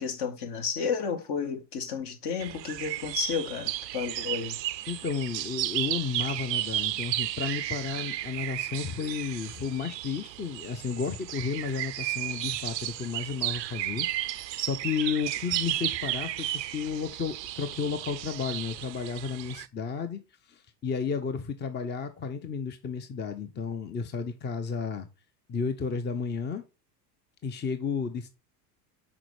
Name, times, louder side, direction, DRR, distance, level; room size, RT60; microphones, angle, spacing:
voice 1, 0.0-4.6, left 6 dB, 55° left, 1.7 m, -32 dB
sound 1, 2.4-19.7, right 14 dB, 90° right, 0.5 m, -33 dB
voice 2, 4.9-20.2 20.5-25.1 25.5-26.6 27.4-28.3, left 5 dB, 20° left, 0.7 m, -32 dB
6.0 x 4.3 x 4.8 m
hypercardioid pair, 80°, 49 cm